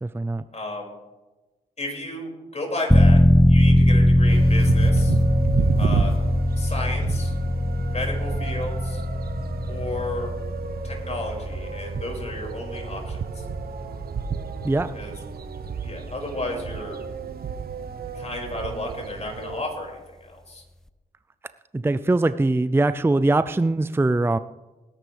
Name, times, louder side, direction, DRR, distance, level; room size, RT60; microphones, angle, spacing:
voice 1, 0.0-0.4 14.6-14.9 21.7-24.4, right 2 dB, 15° right, 13 dB, 0.5 m, -22 dB
voice 2, 0.5-0.9 1.8-3.2 3.5-5.2 5.8-6.1 6.6-7.4 7.9-9.0 9.7-10.3 10.8-13.5 14.9-15.2 15.8-17.0 18.1-20.6, left 2 dB, 40° left, 0 dB, 5.8 m, -33 dB
sound 1, 2.9-15.4 15.8-15.9, left 1 dB, 5° left, 0.9 m, -21 dB
sound 2, 4.3-19.6, right 6 dB, 65° right, 1.0 m, -31 dB
20.0 x 11.0 x 3.4 m, 1.1 s
supercardioid pair, 45°, 17 cm